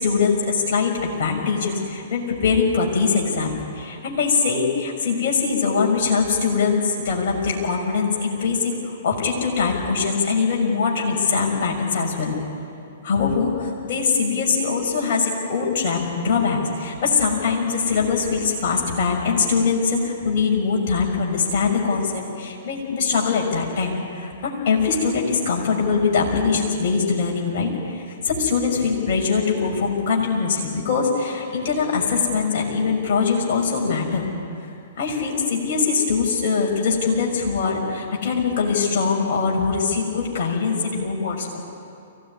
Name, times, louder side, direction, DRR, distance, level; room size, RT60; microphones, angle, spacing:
voice 1, 0.0-12.4 13.0-34.3 35.0-41.6, left 5 dB, 45° left, -1 dB, 6.0 m, -22 dB
23.5 x 17.5 x 9.9 m, 2.6 s
figure-of-eight pair, 115°, 0 cm